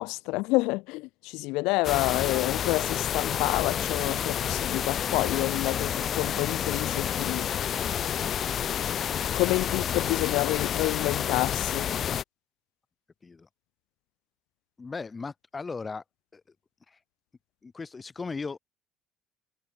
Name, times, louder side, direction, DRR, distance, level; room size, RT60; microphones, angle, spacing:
voice 1, 0.0-7.9 9.3-11.9, left 23 dB, 85° left, 0.9 m, -28 dB
sound 1, 1.8-12.2, left 9 dB, 45° left, 0.8 m, -29 dB
voice 2, 14.8-16.0 16.3-16.4 16.9-17.0 17.6-18.6, left 4 dB, 25° left, 1.2 m, -37 dB
cardioid pair, 110°, 0 cm